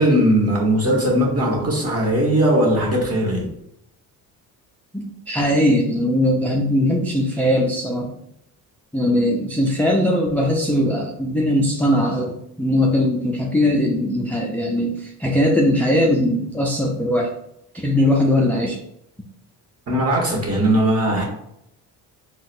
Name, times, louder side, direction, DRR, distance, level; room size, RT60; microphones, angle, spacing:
voice 1, 0.0-3.5 19.9-21.2, right 1 dB, 35° right, -1 dB, 1.2 m, -19 dB
voice 2, 4.9-8.1 8.9-17.3 17.7-18.8, left 1 dB, 5° left, -1 dB, 0.3 m, -20 dB
3.8 x 2.1 x 2.5 m, 0.78 s
supercardioid pair, 65°, 43 cm